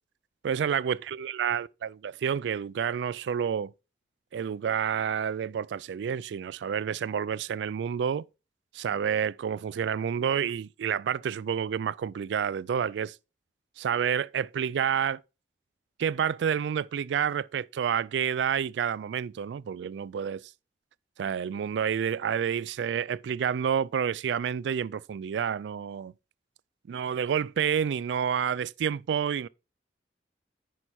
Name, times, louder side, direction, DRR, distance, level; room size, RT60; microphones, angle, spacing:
voice 1, 0.4-3.7 4.3-8.3 8.7-13.2 13.8-15.2 16.0-20.5 21.2-26.1 26.9-29.5, right 8 dB, 80° right, 0.3 m, -29 dB
9.1 x 5.5 x 4.2 m
head